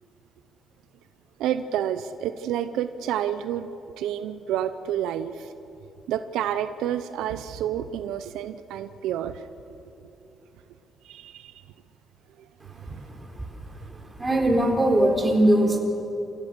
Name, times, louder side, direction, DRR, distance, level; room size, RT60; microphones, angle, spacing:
voice 1, 1.4-3.7 4.0-5.5 6.1-9.5 11.0-11.6, right 10 dB, 90° right, 11 dB, 0.6 m, -29 dB
voice 2, 13.9-15.8, right 1 dB, 20° right, 2 dB, 3.9 m, -21 dB
28.0 x 16.0 x 6.7 m, 3.0 s
cardioid pair, 90°, 0 cm